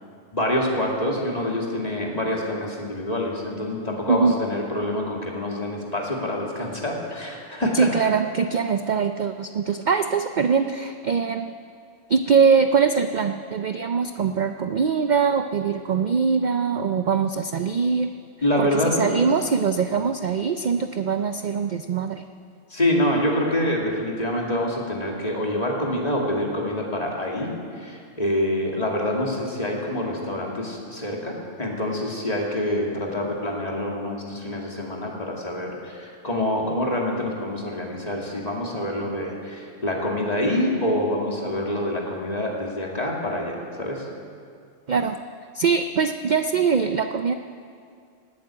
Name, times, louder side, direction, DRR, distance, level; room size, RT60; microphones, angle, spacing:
voice 1, 0.3-7.9 18.4-19.2 22.7-44.0, left 1 dB, 35° left, -2 dB, 2.6 m, -26 dB
voice 2, 7.7-11.5 12.1-18.1 18.6-22.2 44.9-45.2 45.5-47.3, right 5 dB, 50° right, 8 dB, 0.6 m, -22 dB
18.5 x 8.4 x 8.8 m, 2.4 s
omnidirectional pair, 1.2 m